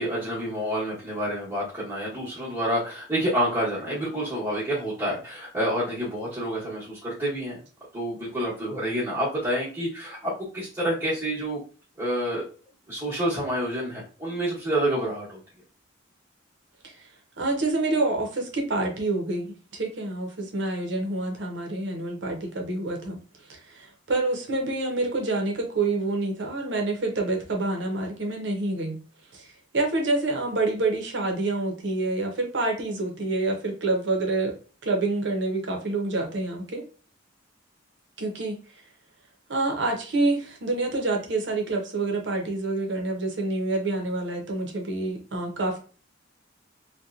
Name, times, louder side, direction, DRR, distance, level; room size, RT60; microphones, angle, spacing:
voice 1, 0.0-7.6 7.9-11.6 12.0-12.5 12.9-15.4, right 1 dB, 15° right, 1.0 m, -28 dB
voice 2, 17.4-23.2 23.5-29.0 29.3-29.5 29.7-34.6 34.8-36.8 38.2-38.6 39.5-45.8, right 2 dB, 65° right, 0.7 m, -27 dB
2.8 x 2.2 x 2.4 m
head